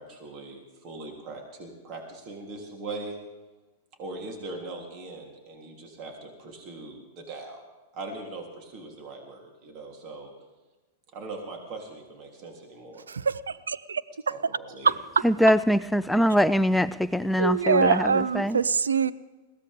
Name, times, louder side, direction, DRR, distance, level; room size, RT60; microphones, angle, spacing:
voice 1, 0.0-3.2 4.0-7.6 7.9-10.3 11.1-13.1 14.3-15.0, right 3 dB, 40° right, 1 dB, 3.4 m, -40 dB
voice 2, 13.1-14.0 14.8-15.2 17.4-19.1, right 5 dB, 80° right, 17 dB, 0.6 m, -24 dB
voice 3, 15.2-18.6, equal, 5° left, 12 dB, 0.4 m, -23 dB
21.5 x 16.0 x 3.7 m, 1.2 s
hypercardioid pair, 100°, 0 cm